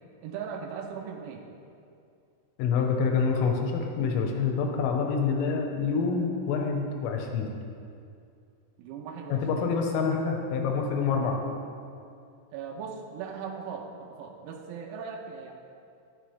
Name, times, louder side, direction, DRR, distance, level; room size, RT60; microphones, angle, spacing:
voice 1, 0.2-1.5 8.8-9.7 12.5-15.5, right 6 dB, 85° right, 1 dB, 3.6 m, -39 dB
voice 2, 2.6-7.5 9.3-11.4, left 5 dB, 85° left, 2 dB, 3.6 m, -27 dB
12.0 x 12.0 x 3.3 m, 2.4 s
omnidirectional pair, 6.0 m